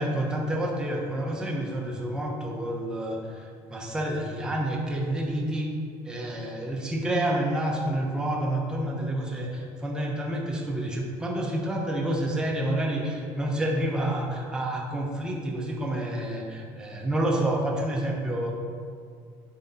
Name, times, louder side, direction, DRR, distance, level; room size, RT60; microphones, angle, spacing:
voice 1, 0.0-5.7 6.0-18.5, right 1 dB, 5° right, -2 dB, 0.9 m, -29 dB
10.0 x 3.4 x 4.1 m, 2.2 s
cardioid pair, 140°, 11 cm